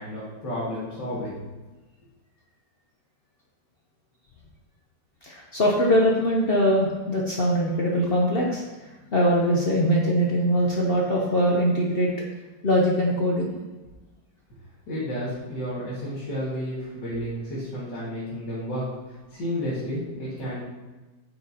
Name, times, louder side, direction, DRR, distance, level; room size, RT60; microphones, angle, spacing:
voice 1, 0.0-1.3 14.9-20.6, equal, 75° left, -9 dB, 2.4 m, -31 dB
voice 2, 5.2-8.6 9.1-12.1 12.6-13.5, equal, 50° left, -2 dB, 0.7 m, -22 dB
7.9 x 5.7 x 2.8 m, 1.2 s
omnidirectional pair, 1.9 m